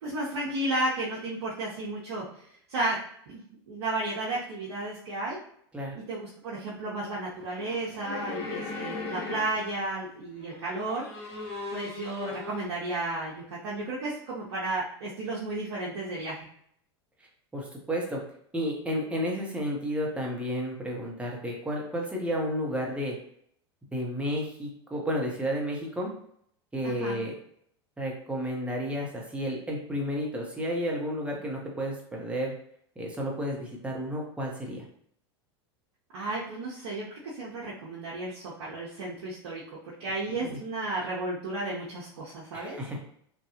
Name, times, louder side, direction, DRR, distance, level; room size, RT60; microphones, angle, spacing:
voice 1, 0.0-3.0 3.3-5.4 6.1-11.4 11.7-16.5 26.8-27.2 36.1-43.0, right 2 dB, 75° right, -6 dB, 0.7 m, -33 dB
sound 1, 7.4-9.9 10.4-12.7, left 3 dB, 45° left, 1.1 m, -38 dB
voice 2, 17.5-18.2 18.5-23.1 23.9-26.1 26.7-27.3 28.0-32.5 33.0-34.8 40.4-40.6 42.5-43.0, equal, 10° right, -1 dB, 0.8 m, -32 dB
2.7 x 2.2 x 2.8 m, 0.67 s
hypercardioid pair, 95°, 14 cm